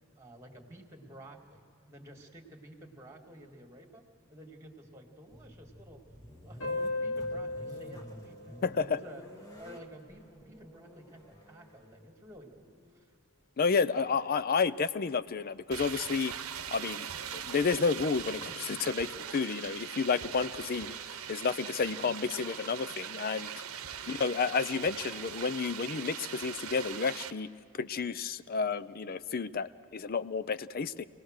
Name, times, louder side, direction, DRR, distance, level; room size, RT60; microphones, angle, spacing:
voice 1, 0.2-6.0 6.4-12.7 12.9-13.1 22.0-22.3 22.9-23.3 24.0-24.2, right 1 dB, 15° right, 3 dB, 2.0 m, -52 dB
sound 1, 5.3-13.0, equal, 15° left, 1.5 m, -51 dB
sound 2, 6.6-9.8, left 2 dB, 75° left, 4.0 m, -37 dB
voice 2, 8.6-9.0 13.6-16.3 16.7-17.1 17.3-20.9 21.3-23.5 24.1-27.5 27.7-31.0, left 5 dB, 45° left, 16 dB, 0.5 m, -31 dB
sound 3, 15.7-27.3, right 8 dB, 80° right, 0.9 m, -41 dB
25.5 x 18.5 x 6.4 m, 2.4 s
head